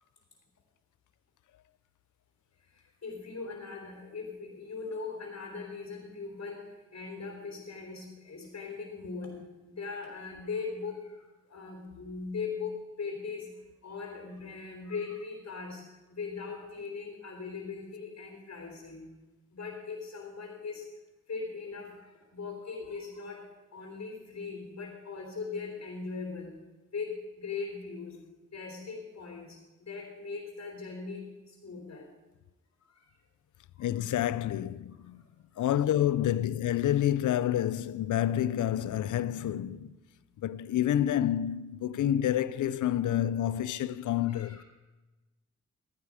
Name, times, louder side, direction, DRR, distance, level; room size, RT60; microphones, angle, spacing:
voice 1, 2.7-9.4 9.7-13.5 13.8-19.1 19.5-20.9 21.3-26.5 26.9-28.2 28.5-32.1 32.8-33.0 33.8-33.9 35.1-35.2 35.5-35.7 44.2-44.6, left 4 dB, 60° left, 3.4 m, -40 dB
voice 2, 33.8-35.2 35.6-40.0 40.4-44.6, left 11 dB, 90° left, 0.5 m, -28 dB
13.5 x 9.6 x 4.9 m
cardioid pair, 55°, 29 cm